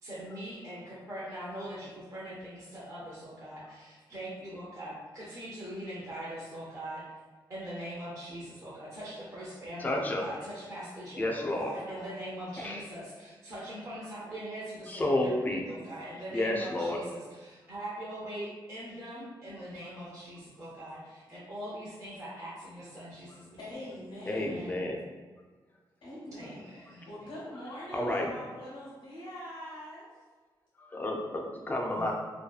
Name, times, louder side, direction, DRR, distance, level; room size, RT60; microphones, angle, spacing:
voice 1, 0.0-7.0 7.5-23.9 24.2-24.7 26.4-27.3 31.9-32.1, right 1 dB, 35° right, -8 dB, 0.6 m, -42 dB
voice 2, 9.8-10.2 11.2-11.7 12.6-12.8 14.9-15.6 16.3-17.0 24.3-25.0 27.9-28.3 30.8-32.1, left 1 dB, 20° left, 0 dB, 0.3 m, -31 dB
voice 3, 11.4-12.2 23.6-24.9 26.0-30.1, left 1 dB, 85° left, -8 dB, 0.8 m, -44 dB
2.7 x 2.2 x 2.3 m, 1.4 s
wide cardioid pair, 160°, 9 cm